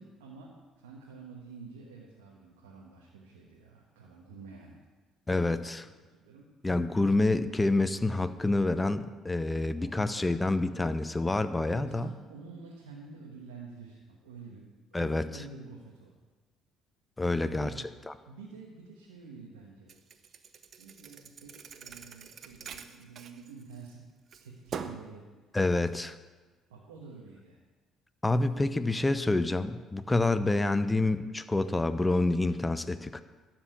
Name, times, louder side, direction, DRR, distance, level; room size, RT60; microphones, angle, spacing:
voice 1, 0.0-4.8 5.8-6.5 9.7-10.5 11.7-16.1 17.4-17.8 18.3-19.9 20.8-24.0 24.4-25.2 26.7-27.6 30.3-30.5, right 4 dB, 90° right, -2 dB, 1.3 m, -49 dB
voice 2, 5.3-5.9 6.6-12.1 14.9-15.3 17.2-17.7 18.1-18.2 25.5-26.2 28.2-33.2, left 2 dB, 15° left, 12 dB, 0.7 m, -27 dB
Thump thud, 19.9-23.9 24.3-25.1, right 6 dB, 55° right, 0.7 m, -44 dB
12.5 x 4.5 x 8.1 m, 1.3 s
hypercardioid pair, 55°, 0 cm